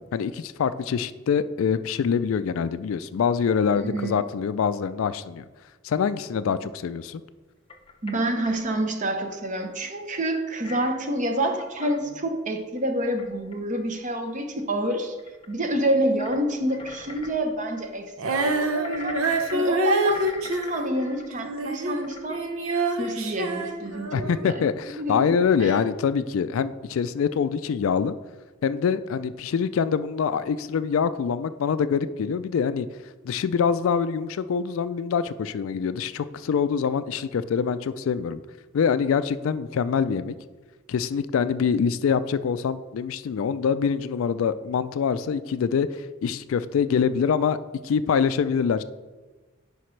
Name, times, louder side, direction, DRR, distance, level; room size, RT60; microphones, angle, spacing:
voice 1, 0.0-5.4 5.8-7.2 24.1-28.1 28.6-32.9 33.2-38.4 38.7-40.3 40.9-47.6 47.8-48.8, left 6 dB, 70° left, 14 dB, 0.3 m, -25 dB
voice 2, 3.8-4.3 6.5-6.6 8.0-15.2 15.5-22.4 23.0-24.7 25.0-25.8, right 1 dB, 35° right, 5 dB, 0.8 m, -28 dB
sound 1, 7.7-8.6 9.1-9.4 10.6-12.0 12.9-13.8 14.3-14.4 15.2-15.5 16.2-16.4 16.7-17.8 18.4-19.7 20.1-24.2 24.6-25.0 25.3-25.8, left 2 dB, 25° left, 0.6 m, -43 dB
Female singing, 18.2-22.0 22.3-24.4, right 2 dB, 85° right, 0.8 m, -26 dB
10.0 x 5.0 x 3.2 m, 1.2 s
head